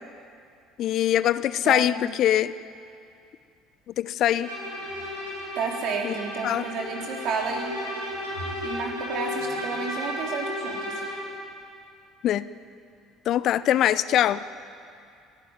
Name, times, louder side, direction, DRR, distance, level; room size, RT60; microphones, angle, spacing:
voice 1, 0.8-2.5 4.0-4.5 6.0-6.1 6.4-6.7 12.2-12.5 13.3-14.4, left 11 dB, 50° left, 17 dB, 0.5 m, -22 dB
Bowed string instrument, 4.4-11.3, left 1 dB, 80° right, 4.9 m, -34 dB
voice 2, 5.6-7.8 8.6-11.0, right 5 dB, 50° right, 1 dB, 3.6 m, -31 dB
28.0 x 12.0 x 9.2 m, 2.5 s
figure-of-eight pair, 55°, 0 cm